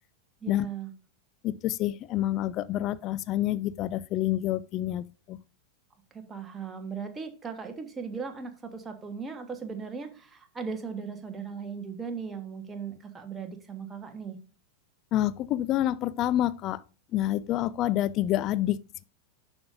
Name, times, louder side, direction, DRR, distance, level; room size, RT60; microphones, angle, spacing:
voice 1, 0.4-0.9 6.1-14.4, right 5 dB, 15° right, 1.3 m, -38 dB
voice 2, 1.4-5.4 15.1-16.8 17.1-18.8, left 13 dB, 35° left, 0.3 m, -28 dB
11.0 x 5.2 x 2.6 m
figure-of-eight pair, 90°, 0 cm